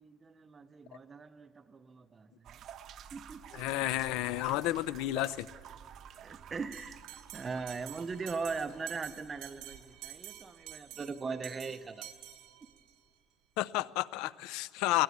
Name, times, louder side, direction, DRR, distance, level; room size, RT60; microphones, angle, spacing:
voice 1, 0.0-2.6 3.1-3.6 6.2-7.0 7.3-12.1, right 4 dB, 20° right, 9 dB, 0.6 m, -40 dB
sound 1, 2.4-10.0, right 9 dB, 50° right, 0.9 m, -52 dB
voice 2, 3.5-5.5 13.6-15.0, left 16 dB, 80° left, 17 dB, 0.5 m, -31 dB
Bell, 6.7-13.0, right 13 dB, 85° right, 1.5 m, -49 dB
20.5 x 19.0 x 9.4 m, 2.2 s
cardioid pair, 160°, 0 cm